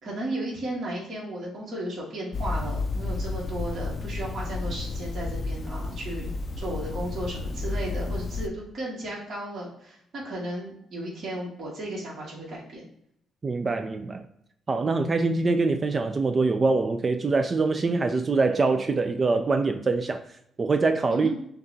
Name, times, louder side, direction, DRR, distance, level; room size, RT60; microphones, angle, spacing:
voice 1, 0.0-12.9 21.1-21.3, right 1 dB, 55° right, -5 dB, 1.5 m, -35 dB
sound 1, 2.3-8.5, left 3 dB, 45° left, 0.3 m, -31 dB
voice 2, 13.4-14.2 14.7-20.2 20.6-21.3, right 3 dB, 35° right, 7 dB, 0.3 m, -24 dB
6.5 x 2.3 x 2.6 m, 0.73 s
cardioid pair, 90°, 0 cm